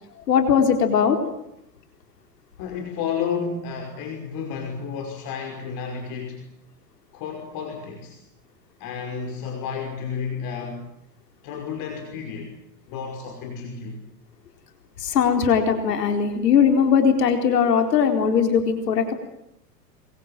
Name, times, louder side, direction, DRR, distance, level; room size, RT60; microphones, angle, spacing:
voice 1, 0.3-1.2 15.0-19.1, left 7 dB, 75° left, 5 dB, 4.3 m, -19 dB
voice 2, 2.6-6.5 7.1-8.2 8.8-10.9 11.4-12.5 12.9-14.0, left 6 dB, 45° left, 3 dB, 5.6 m, -31 dB
26.5 x 22.5 x 9.3 m, 0.82 s
hypercardioid pair, 100°, 49 cm